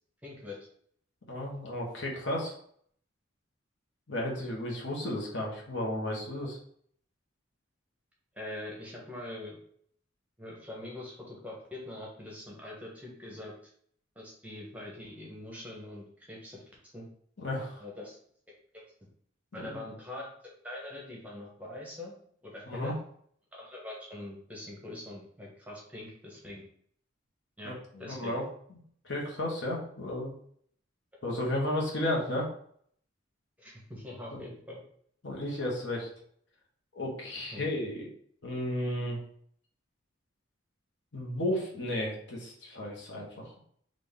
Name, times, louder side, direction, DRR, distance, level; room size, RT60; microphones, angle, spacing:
voice 1, 0.2-0.6 8.3-9.6 10.4-13.5 14.2-16.6 16.9-17.1 17.8-18.2 18.5-18.8 19.5-20.3 20.6-22.1 22.4-23.0 23.5-26.6 27.6-28.4 33.6-34.8 37.5-37.7, left 1 dB, 5° right, -3 dB, 0.9 m, -43 dB
voice 2, 1.3-2.5 4.1-6.6 17.4-17.8 19.5-19.6 22.7-22.9 27.6-28.4 28.7-28.8 29.0-30.3 31.2-32.5 34.3-34.4 35.2-36.1 36.9-38.1 38.4-39.2 41.1-43.4, left 1 dB, 60° left, -2 dB, 1.1 m, -33 dB
4.1 x 2.5 x 3.5 m, 0.62 s
head